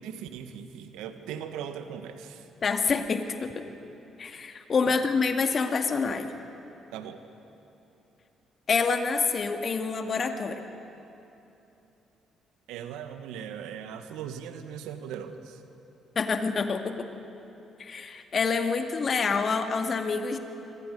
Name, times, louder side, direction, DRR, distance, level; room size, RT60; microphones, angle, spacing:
voice 1, 0.0-2.4 4.8-5.0 6.9-7.2 12.7-15.6, right 8 dB, 75° right, 8 dB, 1.5 m, -39 dB
voice 2, 2.6-3.7 4.2-6.3 8.7-10.7 16.2-17.1 17.8-20.4, left 5 dB, 45° left, 6 dB, 2.0 m, -27 dB
26.5 x 24.5 x 5.4 m, 2.9 s
hypercardioid pair, 45°, 0 cm